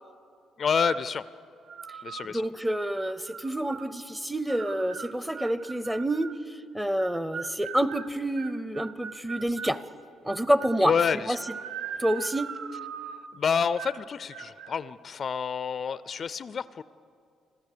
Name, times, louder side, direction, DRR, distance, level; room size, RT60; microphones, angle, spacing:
voice 1, 0.6-1.2 2.0-2.4 10.8-11.4 13.3-16.8, left 6 dB, 40° left, 16 dB, 0.4 m, -28 dB
sound 1, 0.7-1.1 1.7-2.3 2.9-3.9 4.5-6.4 7.0-9.8 10.3-10.9 11.3-13.3 13.8-14.0 14.3-14.7, right 7 dB, 65° right, 0.9 m, -40 dB
voice 2, 2.2-9.8 10.2-11.0 11.3-11.4 12.0-12.5, right 1 dB, 5° right, 15 dB, 0.6 m, -28 dB
27.5 x 15.5 x 6.7 m, 2.5 s
cardioid pair, 145°, 0 cm